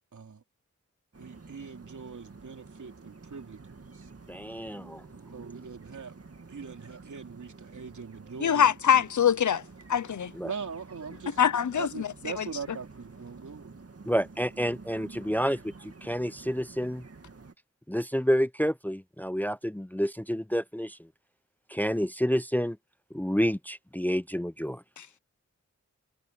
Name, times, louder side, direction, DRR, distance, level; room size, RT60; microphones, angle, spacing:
voice 1, 0.1-0.4 1.2-4.1 5.3-6.1 6.5-9.0 10.4-11.4 11.7-13.8, right 5 dB, 75° right, 3.3 m, -41 dB
sound 1, 1.1-17.5, right 4 dB, 50° right, 2.3 m, -50 dB
voice 2, 4.3-5.0 10.3-10.5 14.1-17.0 17.9-21.0 21.7-22.8 23.1-24.8, equal, 5° left, 0.6 m, -29 dB
voice 3, 8.4-9.6 9.9-10.3 11.4-12.1 12.4-12.5, left 8 dB, 75° left, 0.8 m, -23 dB
cardioid pair, 45°, 30 cm